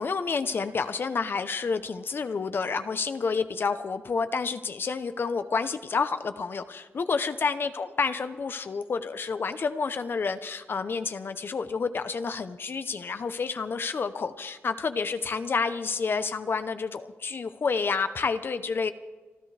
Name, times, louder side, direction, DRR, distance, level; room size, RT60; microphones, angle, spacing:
voice 1, 0.0-18.9, left 5 dB, 50° left, 11 dB, 0.7 m, -29 dB
28.0 x 13.0 x 3.4 m, 1.3 s
wide cardioid pair, 115°, 5 cm